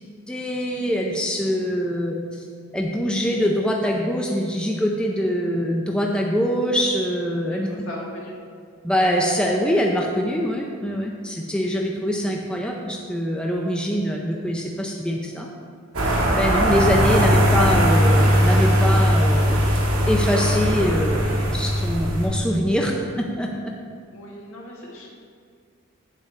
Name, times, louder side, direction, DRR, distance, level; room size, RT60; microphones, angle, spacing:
voice 1, 0.3-2.4 2.7-7.7 8.8-15.5 16.3-19.6 20.1-22.9 23.2-23.5, equal, 5° left, 0 dB, 0.5 m, -24 dB
voice 2, 7.5-8.4 17.1-17.6 24.1-25.1, left 1 dB, 75° left, -3 dB, 1.7 m, -36 dB
sound 1, 15.9-22.3, equal, 75° right, 1.7 m, -19 dB
8.2 x 8.1 x 3.2 m, 2.1 s
head